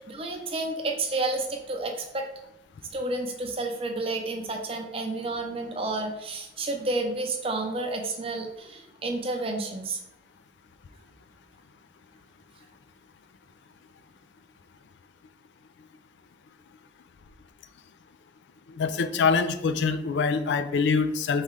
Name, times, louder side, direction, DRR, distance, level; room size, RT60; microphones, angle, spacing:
voice 1, 0.0-2.3 2.9-10.0, right 2 dB, 30° right, 3 dB, 0.5 m, -30 dB
voice 2, 18.7-21.4, left 5 dB, 75° left, 10 dB, 0.3 m, -24 dB
4.1 x 3.2 x 3.6 m, 0.83 s
head